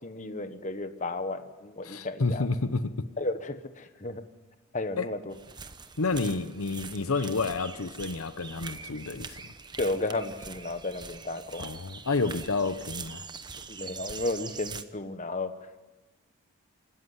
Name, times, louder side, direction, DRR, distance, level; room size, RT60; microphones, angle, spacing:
voice 1, 0.0-2.5 3.2-4.2 4.7-5.3 9.8-11.7 13.7-15.5, left 2 dB, 35° left, 1.2 m, -33 dB
voice 2, 1.8-2.9 5.0-5.1 6.0-9.5 11.6-13.3, left 3 dB, 70° left, 0.9 m, -30 dB
sound 1, 5.3-14.8, right 5 dB, 20° right, 0.9 m, -43 dB
25.0 x 13.5 x 9.6 m
head